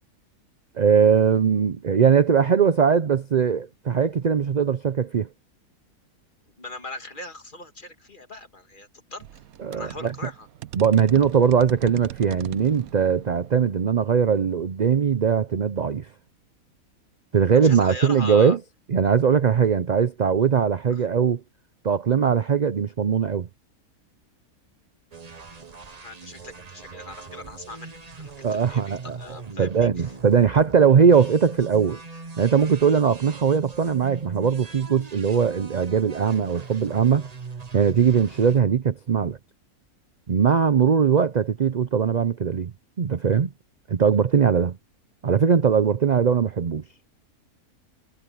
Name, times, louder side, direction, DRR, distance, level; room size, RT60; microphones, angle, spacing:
voice 1, 0.8-5.3 9.6-10.1 10.7-16.1 17.3-18.6 18.9-21.4 21.8-23.5 28.4-32.0 32.4-37.3 37.7-39.4 40.3-42.7 43.0-43.5 43.9-44.8 45.2-46.8, right 7 dB, 50° right, 0.5 m, -20 dB
voice 2, 6.6-9.4 9.7-10.5 17.6-18.6 26.0-27.9 28.2-29.9, left 2 dB, 35° left, 2.3 m, -39 dB
sound 1, 9.2-15.7, right 13 dB, 75° right, 1.1 m, -40 dB
sound 2, 25.1-38.6, right 4 dB, 30° right, 1.1 m, -41 dB
omnidirectional pair, 1.6 m